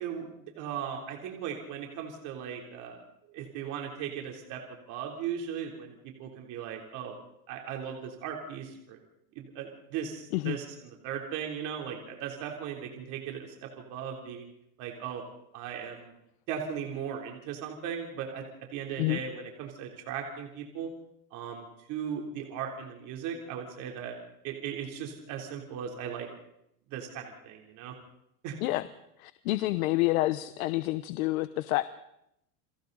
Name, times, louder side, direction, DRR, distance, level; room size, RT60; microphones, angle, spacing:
voice 1, 0.0-3.0 3.3-7.1 7.5-9.0 9.4-14.5 14.8-15.2 15.5-16.1 16.5-18.4 18.7-20.9 21.3-24.2 24.4-26.3 26.9-27.9 28.4-28.6, right 8 dB, 40° right, 1 dB, 3.4 m, -37 dB
voice 2, 29.2-31.8, left 18 dB, 65° left, 13 dB, 0.9 m, -28 dB
29.5 x 23.0 x 4.0 m, 0.80 s
supercardioid pair, 155°, 45 cm